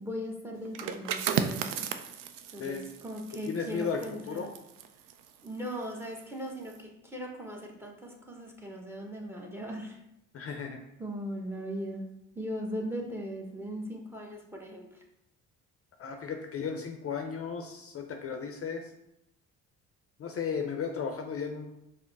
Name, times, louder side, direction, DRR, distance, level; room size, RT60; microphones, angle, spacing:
voice 1, 0.0-1.9 2.5-4.5 5.4-10.0 11.0-12.0 12.3-15.0, equal, 5° right, 1 dB, 0.9 m, -39 dB
sound 1, 0.6-6.1 6.5-6.8, right 8 dB, 70° right, 0.5 m, -35 dB
voice 2, 3.5-4.5 10.3-10.8 16.0-18.9 20.2-21.7, left 6 dB, 40° left, 4 dB, 0.5 m, -35 dB
5.0 x 2.1 x 3.9 m, 0.82 s
supercardioid pair, 65°, 34 cm